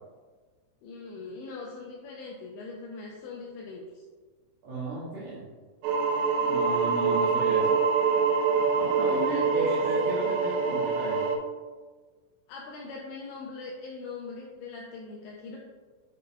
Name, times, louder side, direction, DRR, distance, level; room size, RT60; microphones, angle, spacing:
voice 1, 0.8-4.0 9.2-9.7 12.5-15.6, left 3 dB, 90° left, -2 dB, 2.5 m, -41 dB
voice 2, 4.6-5.4 6.5-7.7 8.7-11.3, right 2 dB, 65° right, -9 dB, 2.4 m, -34 dB
sound 1, 5.8-11.4, right 5 dB, 85° right, 3.2 m, -25 dB
8.2 x 5.3 x 2.2 m, 1.4 s
omnidirectional pair, 5.8 m